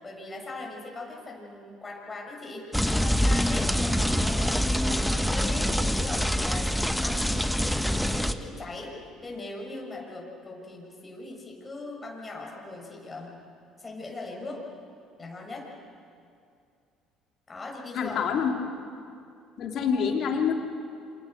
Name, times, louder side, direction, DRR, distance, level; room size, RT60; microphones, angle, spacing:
voice 1, 0.0-9.0 9.2-13.4 13.8-14.6 15.2-15.7 17.5-18.3, left 2 dB, 25° left, -1 dB, 7.1 m, -40 dB
sound 1, 2.7-8.3, equal, ahead, 1.3 m, -25 dB
voice 2, 17.9-18.5 19.6-20.5, left 7 dB, 55° left, 3 dB, 3.1 m, -26 dB
27.5 x 25.0 x 6.7 m, 2.4 s
hypercardioid pair, 60°, 0 cm